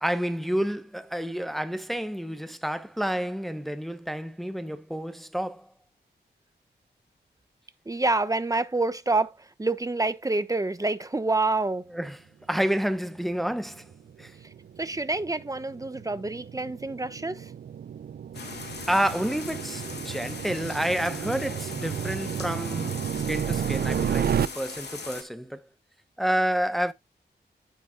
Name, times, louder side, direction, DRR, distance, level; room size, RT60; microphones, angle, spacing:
voice 1, 0.0-5.7 11.9-12.2 12.5-13.9 14.2-14.3 18.9-23.0 23.3-25.6 26.2-26.9, equal, ahead, 0.8 m, -29 dB
voice 2, 7.9-11.9 14.8-17.5, right 2 dB, 20° right, 1.0 m, -27 dB
sound 1, 13.3-24.5, right 8 dB, 60° right, 0.4 m, -32 dB
sound 2, 18.3-25.2, left 4 dB, 70° left, 2.9 m, -40 dB
10.0 x 9.1 x 2.3 m
wide cardioid pair, 90°, 18 cm